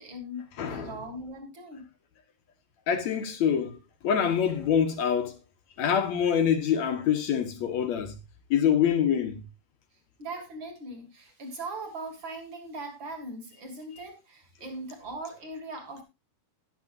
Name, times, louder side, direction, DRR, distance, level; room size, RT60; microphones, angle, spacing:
voice 1, 0.0-1.9 10.2-16.0, right 2 dB, 30° right, 3.2 m, -40 dB
voice 2, 0.6-0.9 2.9-3.8 4.0-5.3 5.8-8.1 8.5-9.4, left 8 dB, 65° left, 1.9 m, -25 dB
13.5 x 11.0 x 2.6 m
omnidirectional pair, 4.7 m